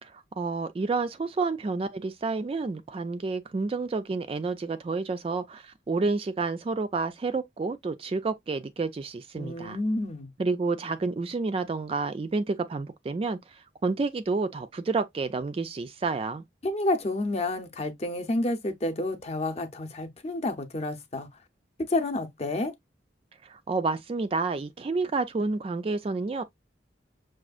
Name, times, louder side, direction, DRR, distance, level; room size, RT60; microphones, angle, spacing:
voice 1, 0.0-9.8 10.4-16.4 23.4-26.4, right 3 dB, 30° right, 0.3 m, -30 dB
voice 2, 9.4-10.3 16.6-21.3 21.9-22.7, left 2 dB, 35° left, 0.7 m, -29 dB
6.0 x 2.4 x 2.4 m
head